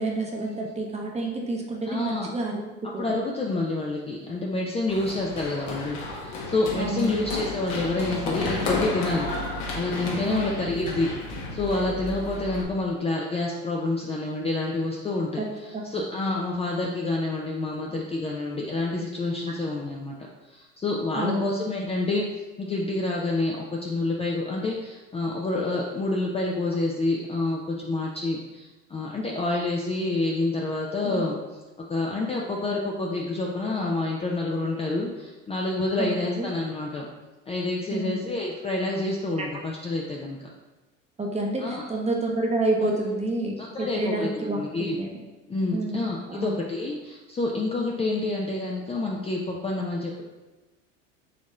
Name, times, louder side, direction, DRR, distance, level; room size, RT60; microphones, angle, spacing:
voice 1, 0.0-2.6 2.9-3.1 6.8-7.2 10.2-10.5 15.4-15.5 15.7-15.9 21.1-21.5 31.0-31.3 36.0-36.1 36.4-36.5 37.9-38.2 39.4-39.5 41.2-44.6 45.0-45.1 45.7-46.6, right 2 dB, 20° right, 0 dB, 0.9 m, -28 dB
voice 2, 1.9-2.3 2.8-11.1 11.5-20.1 20.5-31.4 31.9-37.1 37.5-40.4 41.6-41.8 42.8-42.9 43.6-45.0 45.5-50.2, left 2 dB, 15° left, -2 dB, 0.5 m, -28 dB
Run, 4.9-12.6, left 2 dB, 60° left, 1.2 m, -32 dB
4.2 x 3.0 x 3.8 m, 1.2 s
hypercardioid pair, 80°, 37 cm